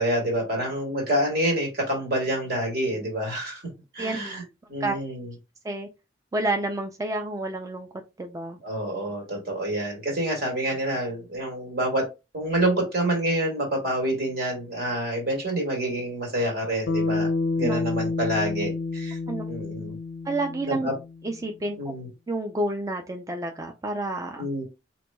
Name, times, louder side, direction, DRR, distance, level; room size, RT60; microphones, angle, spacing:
voice 1, 0.0-3.6 3.9-4.4 4.7-5.3 8.6-12.1 12.3-17.3 17.6-19.2 19.5-20.0 20.7-20.9 21.8-22.1 24.4-24.6, right 1 dB, 60° right, 1.7 m, -27 dB
voice 2, 6.3-7.9 8.2-8.6 17.6-17.8 19.3-19.5 20.2-20.9 21.2-21.8 22.3-24.4, right 2 dB, 20° right, 0.4 m, -29 dB
Bass guitar, 16.9-21.3, left 3 dB, 90° left, 0.5 m, -29 dB
4.4 x 3.0 x 2.2 m
head